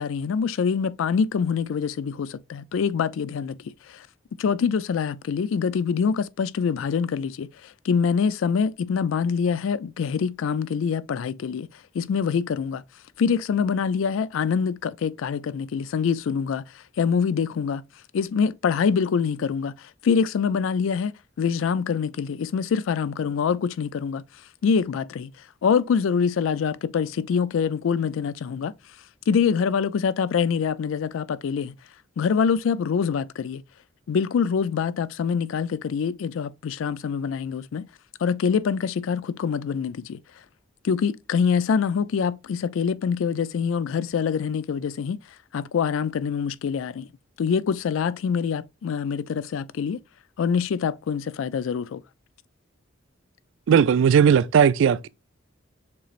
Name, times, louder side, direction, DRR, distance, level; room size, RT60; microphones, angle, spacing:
voice 1, 0.0-3.6 3.9-4.1 4.4-11.7 11.9-12.8 13.2-17.8 18.1-24.2 24.6-25.3 25.6-28.7 29.3-31.7 32.2-33.6 34.1-37.9 38.2-40.2 40.8-45.2 45.5-47.1 47.4-50.0 50.4-52.0, left 6 dB, 75° left, 0.3 m, -25 dB
voice 2, 53.7-55.1, right 7 dB, 65° right, 0.3 m, -17 dB
6.7 x 3.1 x 2.4 m
head